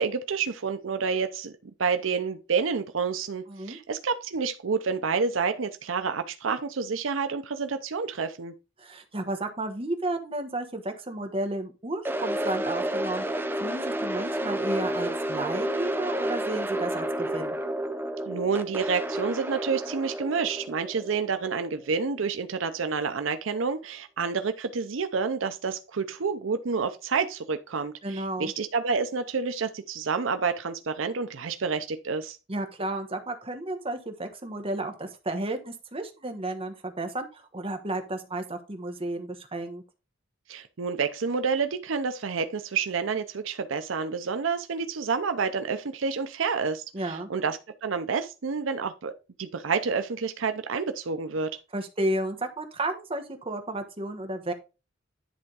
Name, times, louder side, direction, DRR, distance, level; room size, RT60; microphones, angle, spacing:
voice 1, 0.0-1.5 1.8-8.5 18.3-32.4 40.5-49.1 49.4-51.5, right 5 dB, 80° right, 0.6 m, -29 dB
voice 2, 3.5-3.8 8.8-17.6 28.0-28.5 32.5-39.8 46.9-47.3 51.7-54.5, right 2 dB, 30° right, 1.2 m, -32 dB
sound 1, 12.0-22.1, right 1 dB, 10° right, 0.7 m, -31 dB
10.5 x 3.5 x 4.7 m
head